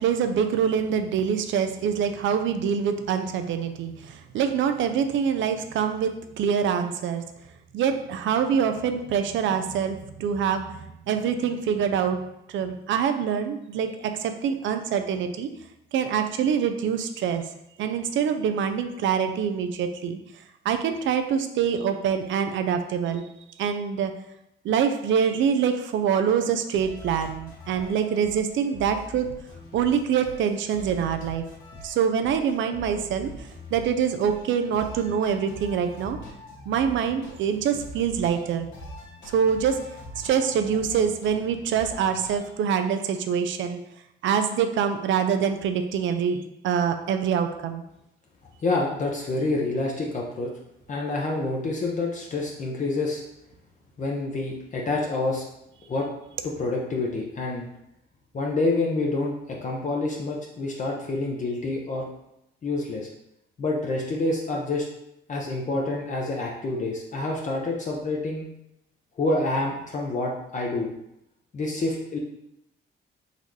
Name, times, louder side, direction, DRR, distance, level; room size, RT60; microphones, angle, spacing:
voice 1, 0.0-7.2 7.7-12.2 12.5-15.5 15.9-17.4 17.8-20.2 20.6-23.3 23.6-24.1 24.6-29.3 29.7-31.4 31.8-33.3 33.7-36.2 36.7-38.7 39.3-39.8 40.2-43.8 44.2-47.8, right 7 dB, 75° right, 7 dB, 0.5 m, -25 dB
sound 1, 26.7-42.5, left 1 dB, 75° left, 1.4 m, -43 dB
voice 2, 48.6-50.5 50.9-53.2 54.0-55.4 55.9-56.1 56.4-57.7 58.3-62.1 62.6-63.1 63.6-64.9 65.3-68.5 69.2-70.9 71.5-72.2, left 2 dB, 40° left, -2 dB, 0.8 m, -27 dB
4.1 x 2.7 x 4.6 m, 0.82 s
cardioid pair, 90°, 20 cm